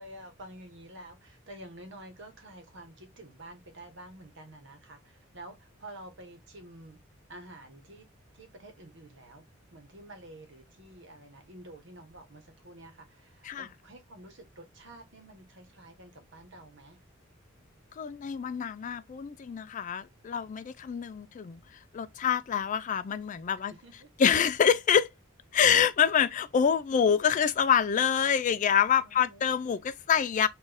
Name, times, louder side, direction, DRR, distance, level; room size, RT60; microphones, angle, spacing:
voice 1, 0.0-7.0 7.3-8.1 8.3-9.4 9.7-17.0 23.6-24.1 29.0-29.5, right 1 dB, 65° right, 1.2 m, -49 dB
voice 2, 18.0-21.6 21.9-23.7 24.2-25.1 25.5-30.5, left 8 dB, 40° left, 0.3 m, -26 dB
4.1 x 2.6 x 3.4 m
head